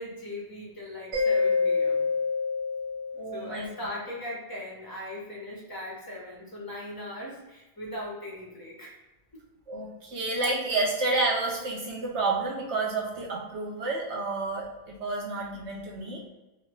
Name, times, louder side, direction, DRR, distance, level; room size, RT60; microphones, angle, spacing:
voice 1, 0.0-2.1 3.3-9.0, left 1 dB, 25° left, -4 dB, 0.5 m, -39 dB
Mallet percussion, 1.1-3.7, left 4 dB, 25° right, 1.2 m, -27 dB
voice 2, 3.2-3.7 9.7-16.2, right 3 dB, 65° right, -2 dB, 0.7 m, -30 dB
3.9 x 2.2 x 3.0 m, 1.1 s
omnidirectional pair, 1.6 m